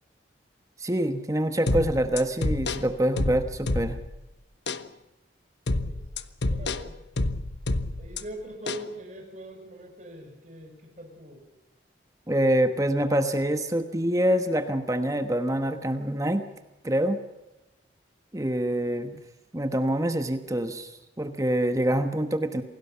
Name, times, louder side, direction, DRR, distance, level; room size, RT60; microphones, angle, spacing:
voice 1, 0.8-4.0 12.3-16.5 16.8-17.2 18.3-19.2 19.5-20.9 21.2-22.6, right 1 dB, 15° right, 8 dB, 1.2 m, -25 dB
sound 1, 1.7-4.2 4.7-4.9 5.7-8.2 8.7-8.9, left 2 dB, 65° left, 1.1 m, -28 dB
voice 2, 6.5-7.0 8.0-11.4, equal, 40° right, 2 dB, 6.1 m, -42 dB
27.5 x 18.5 x 5.7 m, 1.0 s
head